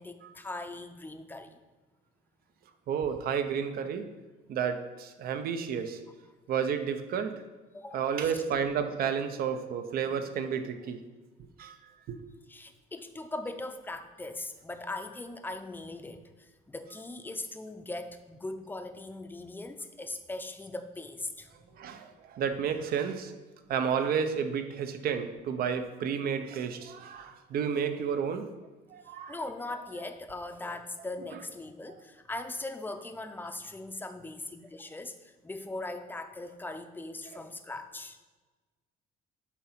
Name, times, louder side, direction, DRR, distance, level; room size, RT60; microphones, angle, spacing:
voice 1, 0.0-1.6 7.7-8.3 12.5-21.8 29.3-38.2, left 2 dB, 10° left, 7 dB, 0.5 m, -40 dB
voice 2, 2.9-4.1 4.5-6.0 6.5-7.4 7.9-11.0 11.6-11.8 12.1-12.2 21.7-23.3 23.7-28.5 28.9-29.4 37.3-37.4, right 7 dB, 60° right, 9 dB, 0.7 m, -31 dB
8.4 x 2.8 x 5.7 m, 1.3 s
cardioid pair, 110°, 17 cm